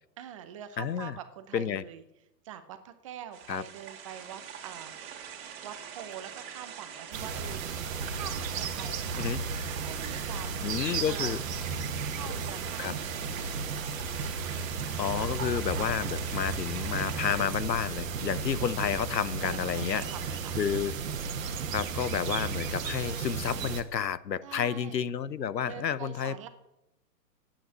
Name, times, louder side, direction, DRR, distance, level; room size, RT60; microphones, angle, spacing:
voice 1, 0.2-2.0 2.4-5.2 5.6-9.2 9.8-10.6 11.1-11.4 12.1-13.8 17.1-17.5 19.4-20.6 24.4-25.0 25.6-26.5, right 10 dB, 20° right, 10 dB, 0.5 m, -45 dB
voice 2, 0.8-1.1 1.5-1.8 3.5-3.6 9.2-9.4 10.6-11.4 12.8-12.9 15.0-20.0 20.6-20.9 21.7-26.5, left 8 dB, 90° left, 17 dB, 0.7 m, -30 dB
sound 1, 3.3-17.4, right 8 dB, 35° right, 2.5 m, -44 dB
sound 2, 7.1-23.8, right 5 dB, 55° right, 1.5 m, -34 dB
sound 3, 7.3-23.4, right 7 dB, 70° right, 1.0 m, -44 dB
8.7 x 8.0 x 8.1 m, 0.87 s
figure-of-eight pair, 125°, 49 cm